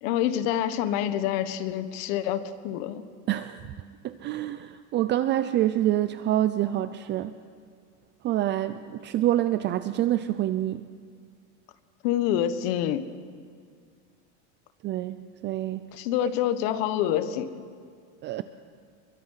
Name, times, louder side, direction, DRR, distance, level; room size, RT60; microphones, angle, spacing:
voice 1, 0.0-3.0 12.0-13.1 15.9-17.5, left 11 dB, 60° left, 12 dB, 1.5 m, -27 dB
voice 2, 3.3-3.7 4.0-7.4 8.2-10.8 14.8-15.9 18.2-18.4, right 13 dB, 30° right, 12 dB, 0.6 m, -26 dB
30.0 x 23.0 x 5.8 m, 2.1 s
supercardioid pair, 150°, 34 cm